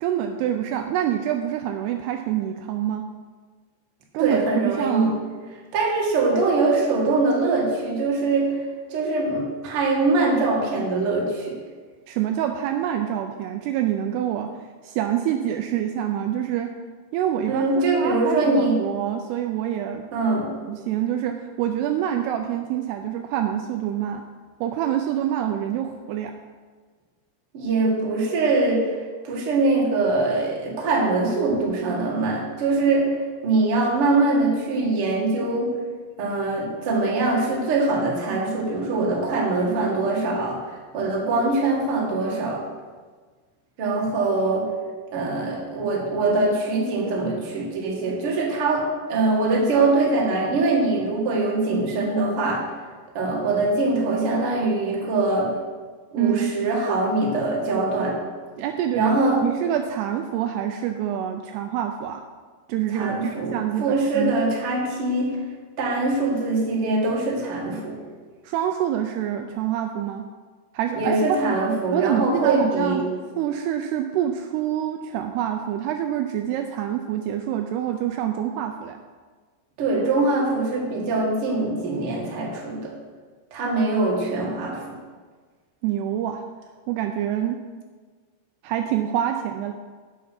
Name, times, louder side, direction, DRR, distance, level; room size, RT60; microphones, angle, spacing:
voice 1, 0.0-3.1 4.1-5.1 12.1-14.5 14.8-16.7 17.1-17.7 18.0-20.1 20.7-24.2 24.6-26.3 56.2-56.5 58.6-59.2 59.4-62.2 62.7-64.4 68.4-70.3 70.7-71.2 71.9-73.1 73.4-79.0 85.8-86.4 86.9-87.6 88.6-89.7, right 10 dB, 85° right, 5 dB, 2.5 m, -26 dB
voice 2, 4.2-5.1 5.7-8.6 8.9-11.5 17.5-18.8 20.1-20.5 27.5-28.9 29.2-33.1 33.4-35.7 36.2-42.6 43.8-44.7 45.1-52.6 53.1-55.5 56.1-58.2 58.9-59.4 62.9-65.4 65.8-68.0 70.9-73.0 79.8-82.9 83.5-84.8, right 3 dB, 45° right, -3 dB, 2.0 m, -23 dB
8.4 x 7.1 x 5.8 m, 1.5 s
omnidirectional pair, 4.9 m